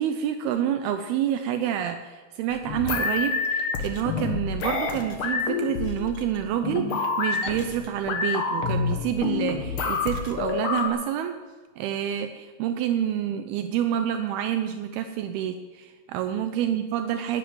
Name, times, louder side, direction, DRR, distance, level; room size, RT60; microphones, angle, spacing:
voice 1, 0.0-11.4 11.8-17.4, right 10 dB, 80° right, 7 dB, 2.5 m, -28 dB
sound 1, 2.5-10.9, left 5 dB, 80° left, 1.2 m, -28 dB
12.0 x 9.8 x 9.3 m, 1.4 s
omnidirectional pair, 4.6 m